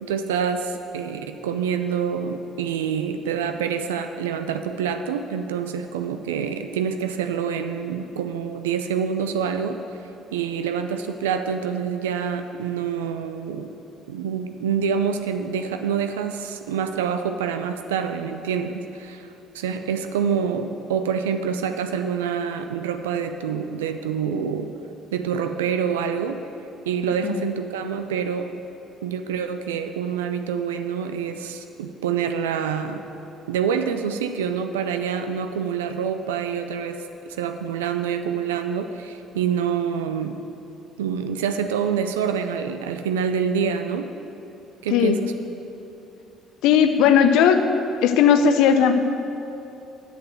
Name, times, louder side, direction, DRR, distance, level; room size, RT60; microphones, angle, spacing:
voice 1, 0.0-9.8 10.3-13.7 14.1-24.7 25.1-26.4 26.9-28.5 29.0-33.0 33.5-37.0 37.3-40.4 41.0-44.1 44.8-45.3, right 7 dB, 90° right, 7 dB, 0.4 m, -26 dB
voice 2, 46.6-47.6 48.0-48.9, left 8 dB, 75° left, 8 dB, 0.6 m, -16 dB
7.7 x 6.3 x 7.8 m, 2.8 s
hypercardioid pair, 60°, 0 cm